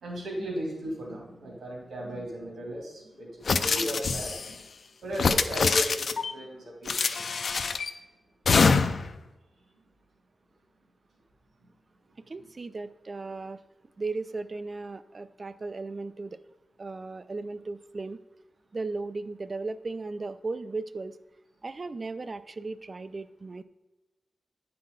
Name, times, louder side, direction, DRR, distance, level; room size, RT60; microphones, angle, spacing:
voice 1, 0.0-4.6 5.0-7.7, equal, 75° right, -3 dB, 3.1 m, -36 dB
sound 1, 3.5-4.5 5.1-6.3 6.9-7.9 8.5-9.1, left 4 dB, 65° left, 0.5 m, -25 dB
voice 2, 12.3-13.6 14.0-16.4 16.8-18.2 18.7-21.2 21.6-23.6, right 3 dB, 35° right, 13 dB, 0.4 m, -36 dB
9.7 x 5.6 x 3.9 m, 1.0 s
wide cardioid pair, 110°, 0 cm